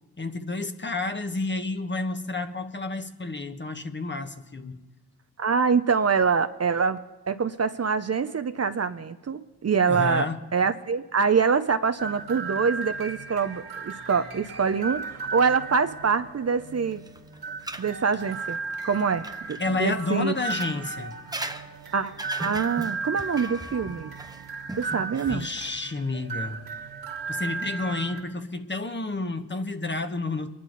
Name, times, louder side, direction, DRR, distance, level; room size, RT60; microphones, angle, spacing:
voice 1, 0.2-4.8 9.9-10.4 19.6-21.2 25.3-26.6 27.3-30.5, left 3 dB, 30° left, 7 dB, 1.3 m, -30 dB
voice 2, 5.4-17.0 17.8-18.6 18.8-20.3 21.9-22.1 22.4-24.1 24.8-25.5, right 5 dB, 40° right, 10 dB, 0.8 m, -25 dB
sound 1, 12.0-28.2, right 4 dB, 65° right, 2.4 m, -36 dB
sound 2, 16.9-19.6 20.4-25.7, right 2 dB, 10° right, 0.9 m, -39 dB
23.5 x 11.0 x 4.0 m, 1.1 s
supercardioid pair, 45°, 39 cm